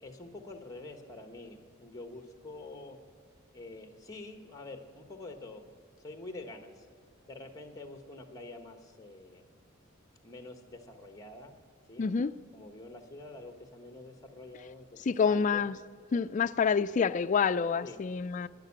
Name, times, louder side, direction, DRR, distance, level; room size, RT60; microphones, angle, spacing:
voice 1, 0.0-3.0 3.5-6.9 7.2-9.6 10.2-11.5 11.9-12.1 12.5-14.9 15.3-15.6 17.8-18.0, left 2 dB, 15° left, 1.2 m, -47 dB
voice 2, 12.0-12.4 15.0-15.8 16.1-18.5, left 6 dB, 40° left, 0.3 m, -27 dB
12.0 x 10.5 x 8.6 m
head